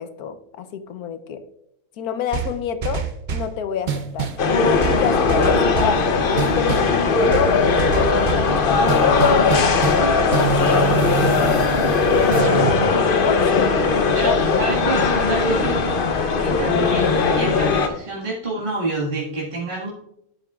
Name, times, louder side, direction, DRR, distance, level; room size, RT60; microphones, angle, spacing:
voice 1, 0.0-1.4 2.0-3.0 3.3-4.3 4.8-6.0 6.3-7.0 7.3-14.6 16.5-16.6, left 8 dB, 80° left, 10 dB, 1.2 m, -28 dB
sound 1, 2.3-3.5 3.9-4.5 4.8-6.0 6.4-6.9 7.3-8.5 8.9-10.1 10.3-12.8, right 7 dB, 50° right, 0.6 m, -26 dB
sound 2, 4.4-17.9, left 4 dB, 45° left, 0.8 m, -19 dB
voice 2, 14.1-16.1 16.4-19.9, right 2 dB, 35° right, -7 dB, 1.9 m, -28 dB
12.0 x 7.5 x 2.4 m, 0.80 s
omnidirectional pair, 1.6 m